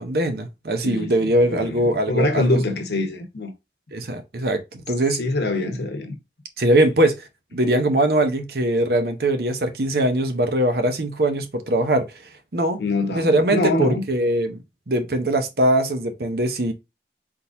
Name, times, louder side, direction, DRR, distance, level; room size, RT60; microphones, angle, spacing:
voice 1, 0.0-2.6 3.9-5.2 6.6-12.1 12.5-12.8 13.1-14.6 14.9-16.7, right 1 dB, 60° right, 0.8 m, -21 dB
voice 2, 0.8-3.5 5.2-6.1 12.8-14.0, left 2 dB, 70° left, 1.0 m, -24 dB
4.3 x 3.8 x 2.6 m
head